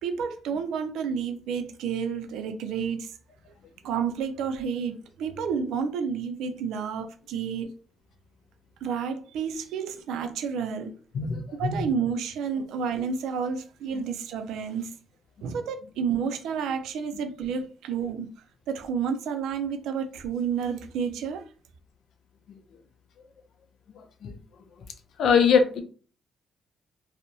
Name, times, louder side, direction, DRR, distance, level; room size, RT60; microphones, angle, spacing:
voice 1, 0.0-3.1 3.8-7.7 8.8-10.9 11.6-14.9 15.4-18.3 18.7-21.5, right 6 dB, 85° right, 0.4 m, -30 dB
voice 2, 11.1-11.8 12.6-12.7 13.9-14.0 24.0-24.3 25.2-25.8, left 6 dB, 70° left, 0.5 m, -23 dB
2.6 x 2.1 x 2.6 m
cardioid pair, 90°, 0 cm